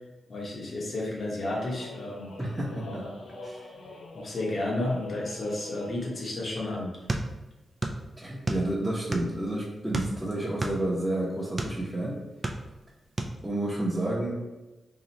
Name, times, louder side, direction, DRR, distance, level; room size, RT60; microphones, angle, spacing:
voice 1, 0.3-2.3 2.8-3.2 4.1-6.9, left 1 dB, 60° left, -3 dB, 1.0 m, -32 dB
sound 1, 1.5-6.2, left 2 dB, 80° left, 0.6 m, -45 dB
voice 2, 2.4-3.0 3.4-3.7 8.2-12.2 13.4-14.3, right 1 dB, 15° right, -7 dB, 0.9 m, -30 dB
sound 2, 7.1-8.0 8.3-9.4 9.9-11.8 12.2-12.9 13.2-13.4, right 2 dB, 35° right, 0.4 m, -31 dB
2.9 x 2.4 x 4.1 m, 1.1 s
cardioid pair, 60°, 0 cm